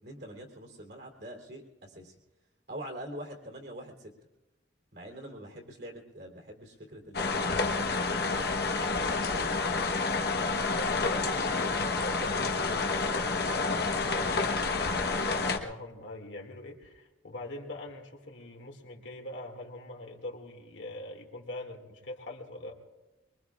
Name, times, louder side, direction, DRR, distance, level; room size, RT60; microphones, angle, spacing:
voice 1, 0.0-2.1 2.7-4.1 4.9-9.5, right 1 dB, 60° right, 0 dB, 3.1 m, -45 dB
sound 1, 7.1-15.6, left 3 dB, 55° left, 1.2 m, -29 dB
voice 2, 10.7-14.7 14.9-22.8, left 1 dB, 75° left, 1 dB, 2.3 m, -43 dB
23.5 x 23.0 x 2.4 m, 1.1 s
head